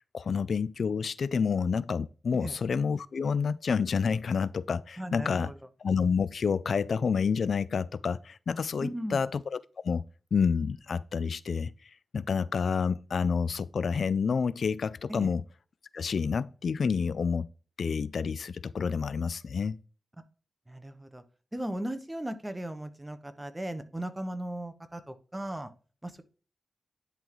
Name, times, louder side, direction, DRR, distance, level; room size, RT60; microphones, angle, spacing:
voice 1, 0.0-5.5 5.8-9.4 9.8-10.0 10.3-15.4 15.9-17.5 17.8-19.8, left 6 dB, 75° left, 0.3 m, -29 dB
voice 2, 5.0-5.6 8.8-9.2 15.1-15.3 20.7-21.2 21.5-25.7 26.0-26.2, right 1 dB, 15° right, 1.1 m, -37 dB
10.5 x 3.8 x 3.1 m
cardioid pair, 55°, 0 cm